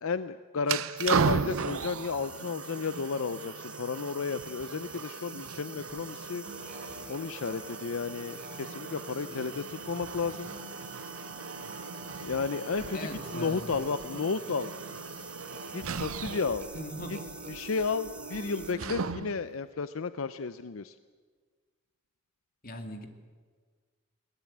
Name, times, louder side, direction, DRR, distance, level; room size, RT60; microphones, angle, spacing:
voice 1, 0.0-6.4 7.1-10.5 12.2-13.0 13.3-14.7 15.7-16.7 17.5-20.9, left 5 dB, 80° left, 13 dB, 0.6 m, -33 dB
sound 1, 0.6-19.5, right 5 dB, 85° right, 0.7 m, -37 dB
sound 2, 1.0-18.7, right 2 dB, 5° right, 1.0 m, -47 dB
sound 3, 6.4-19.1, right 2 dB, 35° right, 2.7 m, -47 dB
voice 2, 12.9-13.7 16.7-17.4 22.6-23.1, equal, 45° left, 5 dB, 2.4 m, -40 dB
22.0 x 18.5 x 8.6 m, 1.5 s
head